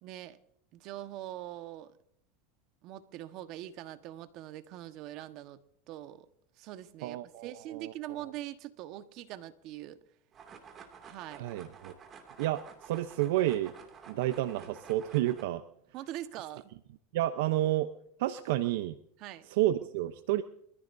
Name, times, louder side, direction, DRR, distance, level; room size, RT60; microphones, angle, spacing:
voice 1, 0.0-0.4 0.7-1.9 2.8-5.6 5.9-6.3 6.6-10.0 11.0-11.4 15.9-16.7 19.2-19.5, right 13 dB, 55° right, 1.3 m, -43 dB
voice 2, 7.0-8.2 11.4-11.9 12.4-13.7 14.1-15.6 17.1-17.9 18.2-18.9 19.5-20.4, right 14 dB, 70° right, 0.8 m, -30 dB
sound 1, 10.3-15.4, right 6 dB, 35° right, 2.6 m, -51 dB
25.0 x 14.5 x 2.7 m
supercardioid pair, 110°, 0 cm